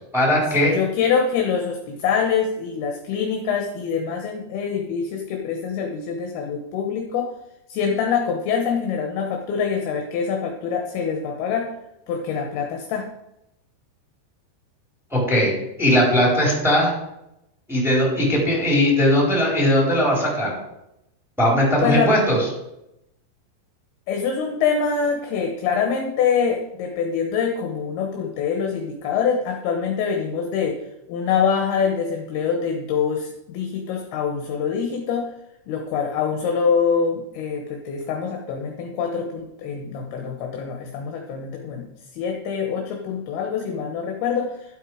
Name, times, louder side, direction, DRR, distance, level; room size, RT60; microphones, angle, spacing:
voice 1, 0.1-0.7 15.1-15.5 15.8-16.9 17.7-20.5 21.4-22.4, equal, ahead, -2 dB, 3.7 m, -19 dB
voice 2, 0.7-7.3 7.7-11.7 12.1-13.1 21.8-22.1 24.1-30.8 31.1-35.3 35.7-44.5, left 6 dB, 70° left, 3 dB, 2.8 m, -24 dB
12.5 x 8.3 x 5.0 m, 0.85 s
omnidirectional pair, 5.2 m